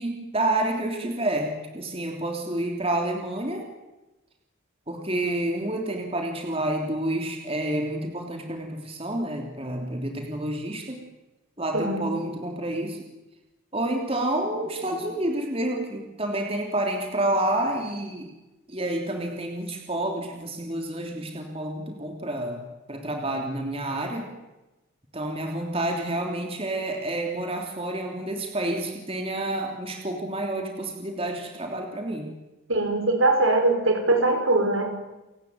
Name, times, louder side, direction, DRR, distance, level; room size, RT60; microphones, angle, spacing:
voice 1, 0.0-3.7 4.9-11.0 11.6-13.0 13.7-18.3 18.7-22.6 22.9-24.3 25.1-32.3, right 1 dB, 25° right, 3 dB, 3.1 m, -29 dB
voice 2, 11.7-12.1 32.7-34.8, right 2 dB, 75° right, 5 dB, 5.9 m, -21 dB
30.0 x 18.0 x 9.5 m, 1.0 s
head